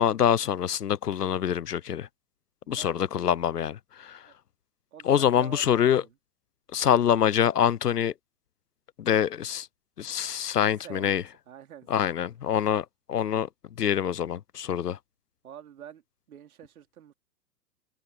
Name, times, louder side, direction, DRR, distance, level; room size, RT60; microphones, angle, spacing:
voice 1, 0.0-2.1 2.7-4.2 5.1-6.0 6.7-8.1 9.0-9.7 10.0-11.2 11.9-13.5 13.8-15.0, left 9 dB, 75° left, 0.9 m, -25 dB
voice 2, 2.6-3.1 4.3-4.4 4.9-6.2 10.8-11.2 11.5-11.9 15.4-16.0 16.3-17.1, right 9 dB, 60° right, 3.6 m, -46 dB
figure-of-eight pair, 105°, 48 cm